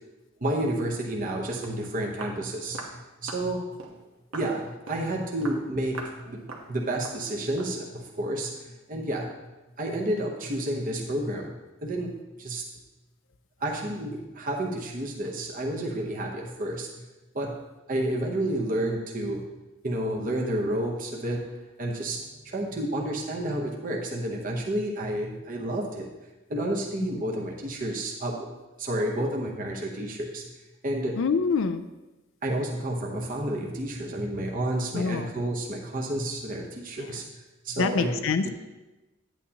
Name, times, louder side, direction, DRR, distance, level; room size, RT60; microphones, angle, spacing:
voice 1, 0.4-2.8 3.2-3.6 4.3-6.4 6.7-8.5 8.9-9.3 9.8-11.5 11.8-12.6 13.6-16.9 17.3-17.5 17.9-19.4 19.8-21.4 21.8-22.2 22.4-26.1 26.5-28.4 28.8-30.4 30.8-31.1 32.4-37.2 37.6-38.1 38.4-38.5, right 1 dB, 40° right, -1 dB, 0.9 m, -30 dB
Walk footsteps, 1.3-1.4 1.6-1.8 2.2-2.4 2.7-3.0 3.3-3.5 3.8-4.0 4.3-4.5 4.9-5.1 5.4-5.6 5.9-6.2 6.5-6.7 7.0-7.2 7.6-7.8, right 3 dB, 70° right, 1.2 m, -40 dB
voice 2, 31.2-31.8 34.9-35.3 37.0-37.2 37.8-38.5, left 5 dB, 60° left, 8 dB, 0.4 m, -26 dB
9.7 x 9.0 x 2.9 m, 1.1 s
head